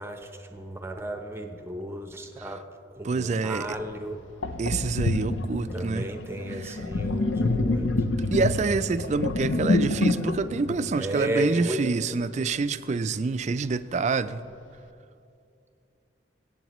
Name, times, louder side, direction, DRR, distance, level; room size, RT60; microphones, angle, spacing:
voice 1, 0.0-2.6 2.9-4.2 5.7-7.9 11.0-11.8, right 1 dB, 15° right, 5 dB, 0.7 m, -33 dB
voice 2, 3.0-3.8 4.6-6.1 6.5-6.8 8.3-14.4, right 4 dB, 35° right, 13 dB, 0.3 m, -27 dB
Sink (filling or washing), 3.7-3.8 4.4-11.7, left 2 dB, 80° left, 0.6 m, -27 dB
23.0 x 8.6 x 3.0 m, 2.5 s
head